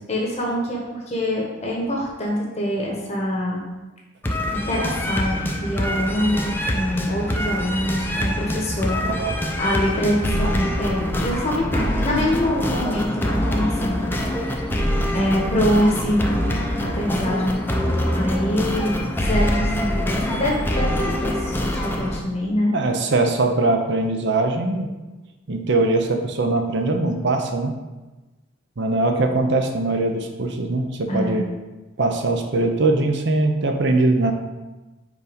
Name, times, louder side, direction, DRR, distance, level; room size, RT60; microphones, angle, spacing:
voice 1, 0.1-3.6 4.5-9.0 9.6-14.7 15.1-16.3 16.8-17.6 18.1-22.7 31.1-31.4, equal, 35° left, -2 dB, 1.0 m, -24 dB
sound 1, 4.2-22.2, left 1 dB, 10° left, 0.5 m, -24 dB
voice 2, 9.0-9.5 14.9-15.2 22.7-24.9 25.5-27.7 28.8-31.5 32.0-34.3, right 2 dB, 60° right, 5 dB, 0.7 m, -21 dB
5.0 x 4.0 x 5.1 m, 1.1 s
head